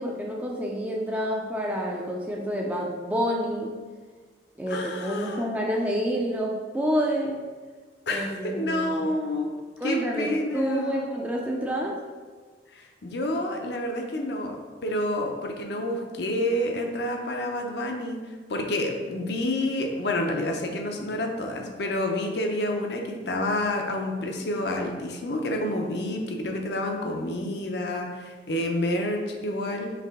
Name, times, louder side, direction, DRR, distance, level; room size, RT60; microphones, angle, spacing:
voice 1, 0.0-3.8 4.6-7.4 8.1-9.1 9.8-12.0, equal, 10° right, -1 dB, 0.4 m, -28 dB
voice 2, 4.7-5.5 8.1-9.5 9.8-11.0 12.7-18.2 18.5-29.9, left 1 dB, 60° left, 3 dB, 0.6 m, -29 dB
4.8 x 3.2 x 3.5 m, 1.4 s
head